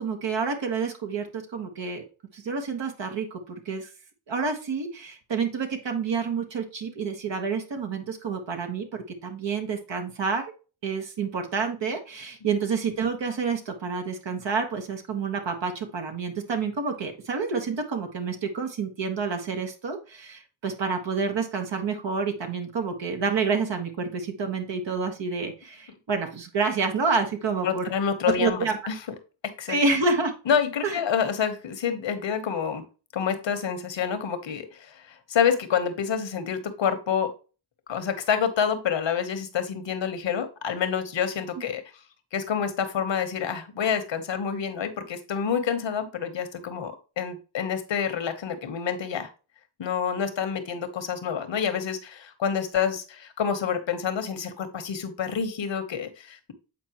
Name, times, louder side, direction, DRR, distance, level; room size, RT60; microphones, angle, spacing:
voice 1, 0.0-2.0 2.3-3.9 4.3-10.4 10.8-27.9 28.4-28.8 29.7-30.3 30.8-31.0 41.6-41.7, right 4 dB, 75° right, 3 dB, 1.4 m, -28 dB
voice 2, 27.6-29.0 29.6-29.8 30.5-32.8 33.1-37.3 37.9-41.8 42.3-49.3 49.8-56.5, left 7 dB, 75° left, 8 dB, 1.2 m, -28 dB
8.2 x 4.4 x 3.0 m, 0.33 s
cardioid pair, 50°, 44 cm